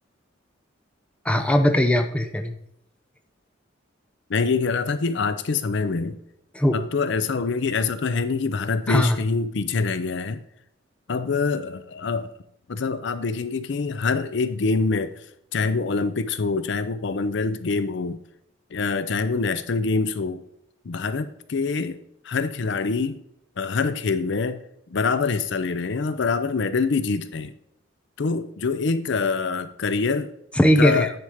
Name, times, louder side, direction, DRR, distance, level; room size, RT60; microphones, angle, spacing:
voice 1, 1.3-2.5 6.5-6.8 8.9-9.2 30.6-31.1, equal, 5° left, 5 dB, 0.7 m, -19 dB
voice 2, 4.3-6.2 6.7-10.4 11.1-12.3 12.7-15.2 15.5-18.2 18.7-20.4 20.8-22.0 22.2-23.2 23.6-24.6 24.9-27.5 28.2-30.3 30.8-31.1, left 4 dB, 60° left, 12 dB, 0.5 m, -25 dB
9.6 x 4.4 x 5.0 m, 0.75 s
head